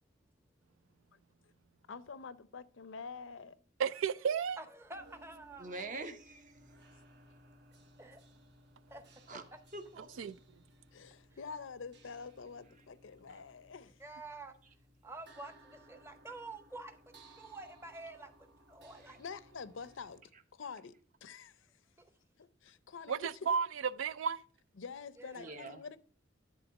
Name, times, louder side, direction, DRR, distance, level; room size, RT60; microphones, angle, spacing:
voice 1, 1.9-3.6 10.9-14.0 19.2-20.2 20.5-21.0 21.2-21.7 22.4-23.3 24.8-26.0, left 5 dB, 75° left, 0.5 m, -47 dB
voice 2, 3.8-4.6 10.2-10.4 23.1-23.7 23.9-24.4, right 6 dB, 85° right, 0.4 m, -32 dB
voice 3, 4.6-5.9 8.0-8.2 8.9-9.0 14.0-14.5 15.0-17.0 17.4-18.3 18.7-19.2 25.2-25.6, right 2 dB, 15° right, 0.8 m, -48 dB
sound 1, 4.9-20.2, right 1 dB, 60° right, 1.3 m, -62 dB
voice 4, 5.6-6.6 9.3-9.4 9.7-10.1 19.1-19.2 20.3-20.4 25.4-25.8, right 3 dB, 40° right, 0.9 m, -44 dB
11.0 x 3.8 x 5.2 m
head